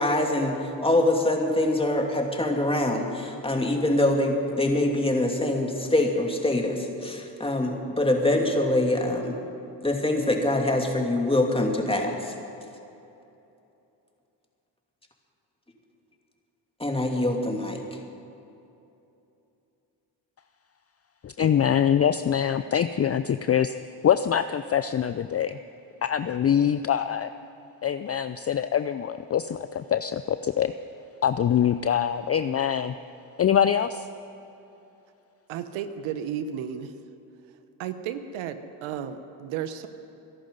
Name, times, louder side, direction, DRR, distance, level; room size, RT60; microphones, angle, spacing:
voice 1, 0.0-9.3 9.8-12.3 16.8-17.8, left 1 dB, 10° left, 1 dB, 2.7 m, -24 dB
voice 2, 21.2-23.8 24.0-25.6 26.0-27.3 27.8-30.7 31.2-32.9 33.4-34.1, left 9 dB, 30° left, 12 dB, 0.5 m, -24 dB
voice 3, 35.5-36.9 37.8-39.9, right 9 dB, 80° right, 10 dB, 1.0 m, -33 dB
23.0 x 11.0 x 5.4 m, 2.8 s
supercardioid pair, 55°, 47 cm